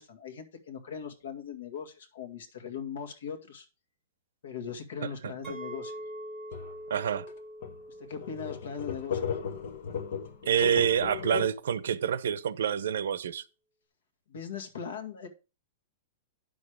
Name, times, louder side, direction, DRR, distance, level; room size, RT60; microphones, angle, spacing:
voice 1, 0.0-3.7 4.4-5.9 8.0-9.2 14.3-15.3, left 7 dB, 70° left, 2.0 m, -39 dB
voice 2, 5.0-5.3 6.9-7.3 10.4-13.4, right 8 dB, 75° right, 0.8 m, -27 dB
Chink clink, 5.4-10.6, right 1 dB, 10° right, 1.5 m, -45 dB
sound 1, 6.5-6.8 7.3-7.4 7.6-7.8 8.1-11.5, left 7 dB, 45° left, 1.3 m, -36 dB
9.7 x 6.5 x 4.8 m
supercardioid pair, 180°, 0 cm